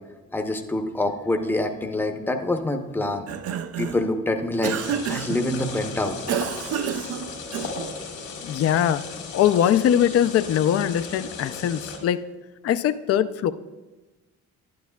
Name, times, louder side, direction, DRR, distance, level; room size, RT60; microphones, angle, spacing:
voice 1, 0.3-3.3 3.8-4.8 5.1-6.2, left 2 dB, 5° left, 5 dB, 0.7 m, -26 dB
Cough, 3.1-4.1 4.6-5.4 6.3-7.9, right 8 dB, 55° right, 0.5 m, -29 dB
sound 1, 4.8-12.0, left 4 dB, 85° left, 2.0 m, -36 dB
voice 2, 8.4-9.0 9.3-12.2 12.6-13.5, left 10 dB, 50° left, 12 dB, 0.4 m, -21 dB
11.5 x 9.4 x 2.2 m, 1.2 s
cardioid pair, 90°, 30 cm